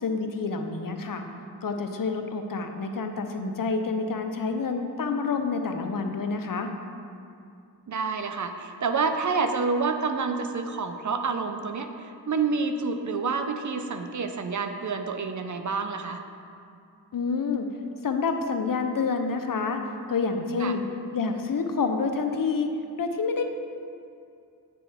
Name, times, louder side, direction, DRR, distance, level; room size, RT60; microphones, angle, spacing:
voice 1, 0.0-1.2 1.6-6.7 17.1-17.7 18.0-19.8 20.1-20.8 21.1-23.4, left 4 dB, 55° left, 5 dB, 0.7 m, -28 dB
voice 2, 7.9-16.2 20.6-20.8, right 4 dB, 45° right, 7 dB, 0.6 m, -28 dB
8.7 x 6.1 x 3.5 m, 2.4 s
cardioid pair, 60°, 40 cm